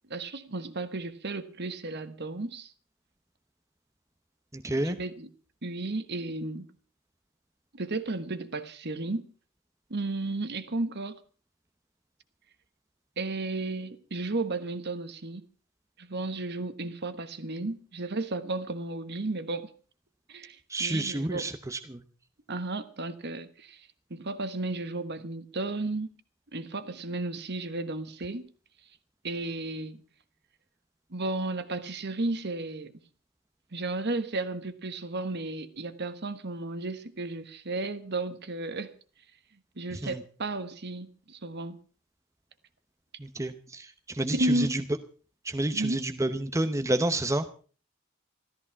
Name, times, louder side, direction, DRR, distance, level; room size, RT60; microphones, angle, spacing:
voice 1, 0.1-2.7 4.8-5.3 5.6-6.7 7.7-9.3 9.9-11.1 13.2-15.4 16.0-19.7 20.3-21.5 22.5-26.1 26.5-28.5 29.2-30.0 31.1-32.9 33.7-38.9 39.8-41.8 44.3-44.8 45.7-46.0, right 2 dB, 50° right, 1.3 m, -33 dB
voice 2, 4.5-5.0 20.7-22.0 39.9-40.2 43.2-44.8 45.4-47.5, right 1 dB, 15° right, 0.8 m, -29 dB
14.0 x 13.5 x 5.8 m
head